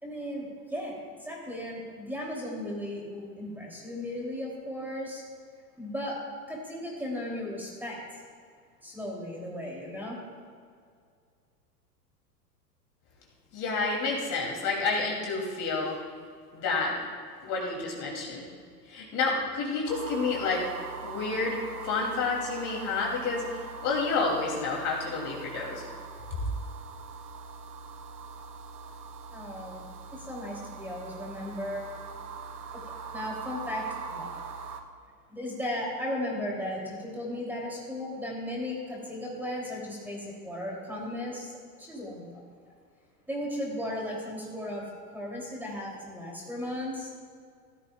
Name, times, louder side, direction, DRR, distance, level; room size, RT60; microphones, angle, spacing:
voice 1, 0.0-5.2 5.8-6.2 6.5-8.2 8.8-10.2 29.3-31.9 32.7-34.3 35.3-42.4 43.3-44.8 45.1-47.1, left 1 dB, 5° right, -3 dB, 3.0 m, -36 dB
voice 2, 13.5-16.0 16.5-17.0 17.4-18.5 18.9-20.7 21.0-25.9 26.3-26.4, left 4 dB, 40° left, -2 dB, 3.0 m, -29 dB
sound 1, 19.9-34.8, right 5 dB, 80° right, 1.0 m, -42 dB
17.5 x 12.5 x 2.4 m, 2.2 s
figure-of-eight pair, 90°, 47 cm